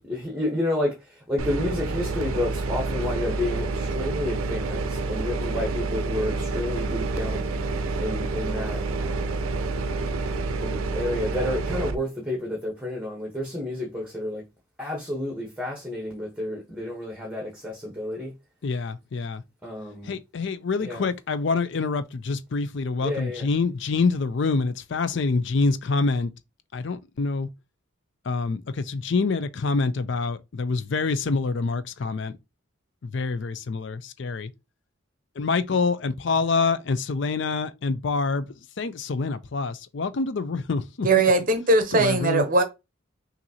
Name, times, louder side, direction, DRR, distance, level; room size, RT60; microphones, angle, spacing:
voice 1, 0.0-9.4 10.6-14.4 14.8-18.3 19.6-20.1 20.8-21.1 23.0-23.5, left 1 dB, 5° right, 0.9 m, -30 dB
sound 1, 1.4-12.0, right 3 dB, 85° right, 0.5 m, -28 dB
voice 2, 18.6-19.4 20.0-26.3 26.7-27.5 28.3-32.4 33.0-34.5 35.4-38.5 38.8-41.1 41.9-42.5, left 4 dB, 55° left, 0.4 m, -26 dB
voice 3, 41.0-42.6, right 2 dB, 40° right, 0.7 m, -20 dB
5.7 x 2.6 x 2.8 m
head